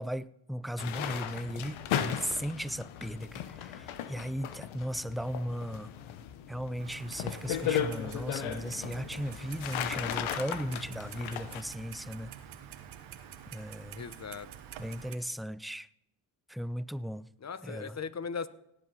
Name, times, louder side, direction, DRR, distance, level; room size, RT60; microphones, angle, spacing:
voice 1, 0.0-5.9 6.5-12.3 13.5-14.0 14.8-15.9 16.5-17.3 17.6-18.0, equal, ahead, 0.4 m, -37 dB
sound 1, 0.8-11.6, left 9 dB, 75° left, 1.1 m, -36 dB
Clock, 6.8-15.2, right 9 dB, 75° right, 1.4 m, -47 dB
voice 2, 14.0-14.5 17.4-18.5, left 6 dB, 35° left, 1.0 m, -38 dB
17.5 x 8.2 x 5.5 m
supercardioid pair, 55°, 47 cm